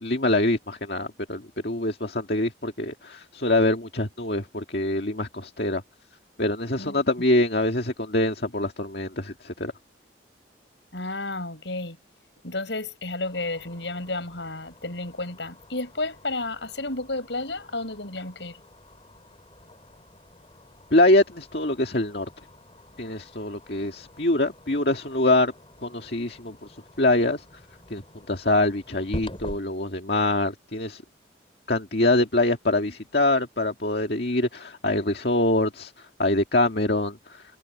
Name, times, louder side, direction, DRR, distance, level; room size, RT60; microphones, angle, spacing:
voice 1, 0.0-5.8 6.4-9.7 20.9-22.3 23.0-25.5 25.8-27.4 27.9-31.0 31.7-37.4, left 2 dB, 60° left, 2.0 m, -24 dB
voice 2, 10.9-12.0 12.4-18.6, left 2 dB, 75° left, 7.0 m, -32 dB
sound 1, 13.2-29.6, left 1 dB, 30° left, 3.7 m, -46 dB
head